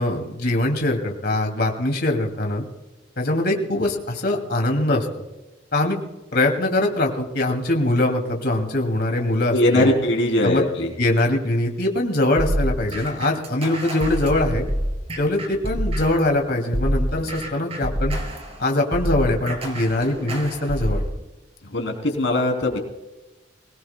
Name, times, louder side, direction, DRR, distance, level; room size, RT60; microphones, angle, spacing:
voice 1, 0.0-2.6 3.2-5.1 5.7-6.0 6.3-9.9 10.4-10.6 11.0-14.6 15.2-18.2 18.6-21.0, left 1 dB, 55° left, 2 dB, 2.5 m, -22 dB
voice 2, 9.5-10.9 21.7-22.8, left 1 dB, 80° left, 2 dB, 3.2 m, -20 dB
sound 1, 12.4-16.3 16.7-21.1, equal, 30° right, 2.8 m, -27 dB
25.0 x 18.5 x 2.2 m, 1.1 s
head